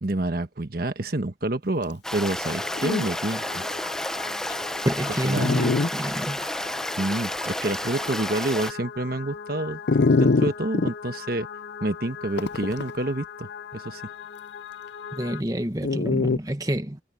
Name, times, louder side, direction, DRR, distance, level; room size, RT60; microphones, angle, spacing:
voice 1, 0.0-3.6 5.2-5.5 7.0-9.8 10.1-11.5 11.8-14.0, right 2 dB, 55° right, 1.2 m, -28 dB
Stream, 2.0-8.7, left 1 dB, 5° left, 0.8 m, -31 dB
sound 1, 2.4-15.4, left 7 dB, 85° left, 1.4 m, -40 dB
Dog, 2.4-2.5 2.8-3.0 3.7-3.8 4.5-4.6 5.3-5.9 6.4-6.5 9.9-10.9 12.4-12.9 15.8-16.4, left 4 dB, 65° left, 0.5 m, -22 dB
voice 2, 4.8-6.4 15.1-17.0, right 1 dB, 20° right, 1.4 m, -28 dB
head